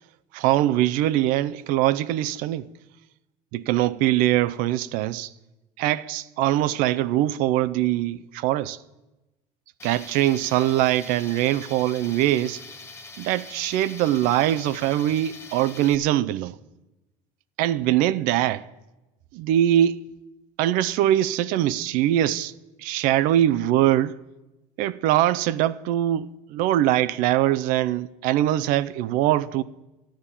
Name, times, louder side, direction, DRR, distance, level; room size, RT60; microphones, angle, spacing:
voice 1, 0.3-2.7 3.5-5.3 5.8-8.8 9.8-12.6 13.2-16.5 17.6-18.7 19.3-20.0 20.6-22.5 22.8-24.2 24.8-29.6, right 13 dB, 70° right, 0.5 m, -22 dB
Tools, 9.8-15.9, left 3 dB, 20° left, 0.9 m, -43 dB
12.5 x 7.2 x 9.9 m
cardioid pair, 165°, 15 cm